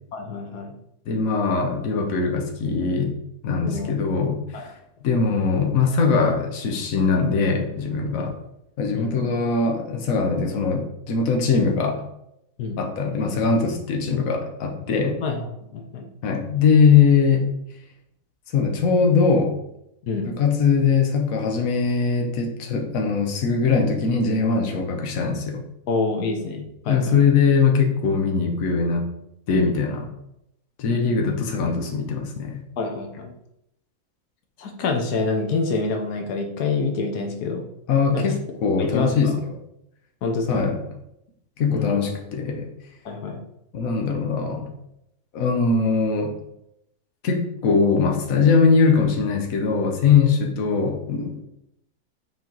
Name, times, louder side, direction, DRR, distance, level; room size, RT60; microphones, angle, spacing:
voice 1, 0.1-0.7 3.6-4.0 4.5-4.6 8.2-8.3 8.9-9.1 12.6-12.8 15.0-15.4 15.7-16.0 20.1-20.3 25.9-27.1 32.8-33.3 34.6-37.6 38.1-38.3 38.8-39.2 40.2-40.6 41.7-42.1 43.0-43.4, left 4 dB, 85° left, 4 dB, 1.4 m, -27 dB
voice 2, 1.1-3.2 3.4-4.7 5.0-8.4 8.8-12.1 12.8-15.2 16.2-17.5 18.5-19.5 20.2-25.6 26.9-29.1 29.5-30.1 30.8-32.6 37.9-39.5 40.5-40.8 41.6-42.7 43.7-44.7 45.3-46.3 47.2-51.4, left 5 dB, 65° left, 2 dB, 1.4 m, -21 dB
7.4 x 4.5 x 3.9 m, 0.81 s
omnidirectional pair, 1.7 m